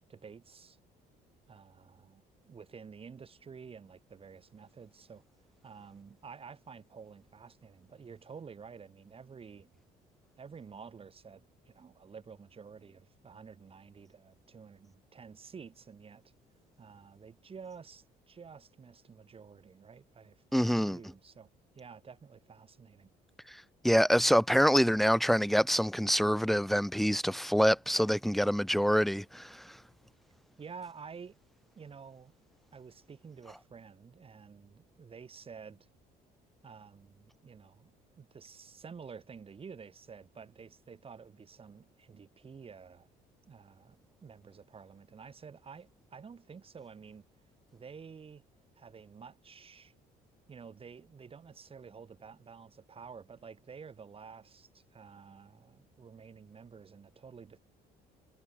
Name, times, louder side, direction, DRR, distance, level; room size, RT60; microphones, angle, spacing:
voice 1, 0.1-0.8 1.5-5.2 5.6-9.7 10.4-16.2 16.8-21.5 21.8-23.1 30.6-31.4 31.8-32.3 32.7-35.9 36.6-37.9 38.2-43.1 43.5-47.2 47.7-48.4 48.8-49.9 50.5-57.6, right 6 dB, 35° right, 7.1 m, -50 dB
voice 2, 20.5-21.0 23.8-29.5, equal, ahead, 0.8 m, -26 dB
cardioid pair, 110°, 17 cm